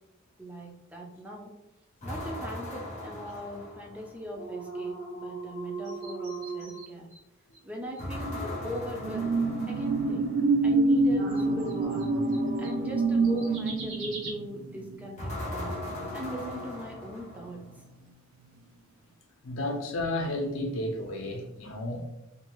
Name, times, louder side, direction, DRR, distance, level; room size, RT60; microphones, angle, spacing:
voice 1, 0.4-1.5 2.0-7.1 7.6-9.4 9.7-10.3 10.6-12.1 12.6-15.8 16.1-17.6, equal, 5° right, 0.3 m, -40 dB
sound 1, 2.0-4.4 8.0-10.5 15.2-17.8, left 1 dB, 35° left, 0.6 m, -39 dB
sound 2, 4.3-7.2 7.5-7.6 7.9-8.0 11.1-14.3, right 3 dB, 65° right, 1.0 m, -39 dB
sound 3, 8.1-17.1 17.5-17.7, right 3 dB, 85° right, 0.4 m, -28 dB
voice 2, 19.4-22.1, left 1 dB, 75° left, 0.6 m, -32 dB
2.6 x 2.3 x 2.9 m
head